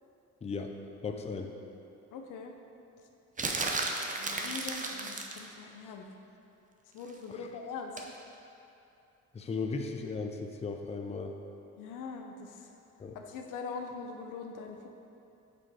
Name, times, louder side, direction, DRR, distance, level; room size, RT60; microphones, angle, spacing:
voice 1, 0.4-0.7 1.0-1.5 7.3-7.4 9.3-11.3 13.0-13.2, left 4 dB, 20° left, 4 dB, 0.5 m, -36 dB
voice 2, 2.1-2.5 4.2-6.1 6.9-8.0 11.8-12.7 13.1-14.9, left 5 dB, 90° left, 3 dB, 0.7 m, -42 dB
sound 1, 3.4-5.5 8.0-8.2, right 3 dB, 25° right, 0.6 m, -34 dB
6.8 x 3.8 x 4.8 m, 2.7 s
cardioid pair, 90°, 30 cm